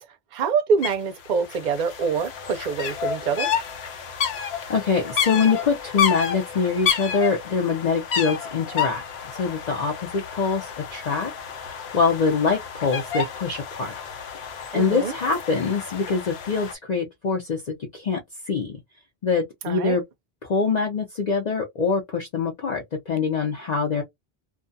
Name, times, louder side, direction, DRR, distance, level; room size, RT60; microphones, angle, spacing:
voice 1, 0.3-3.5 14.7-15.1 19.6-20.0, right 5 dB, 55° right, 0.6 m, -25 dB
sound 1, 0.8-0.9 1.2-16.7, left 7 dB, 85° left, 0.9 m, -30 dB
voice 2, 4.5-9.0 9.3-11.3 11.6-13.9 14.7-18.2 18.5-18.8 19.2-20.0 20.4-24.0, left 5 dB, 50° left, 0.7 m, -24 dB
2.3 x 2.3 x 2.5 m
omnidirectional pair, 1.0 m